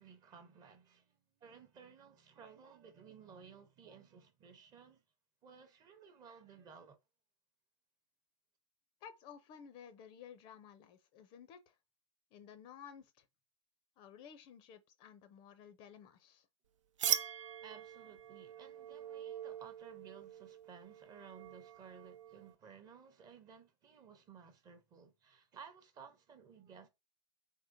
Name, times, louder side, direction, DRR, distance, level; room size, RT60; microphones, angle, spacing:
voice 1, 0.0-5.0 5.4-7.0 17.1-26.9, right 6 dB, 25° right, 0.7 m, -57 dB
voice 2, 9.0-11.8 12.3-13.3 14.0-16.5, left 8 dB, 30° left, 0.5 m, -55 dB
sound 1, 17.0-22.5, right 9 dB, 75° right, 0.5 m, -41 dB
4.2 x 3.7 x 2.5 m
hypercardioid pair, 130°, 16 cm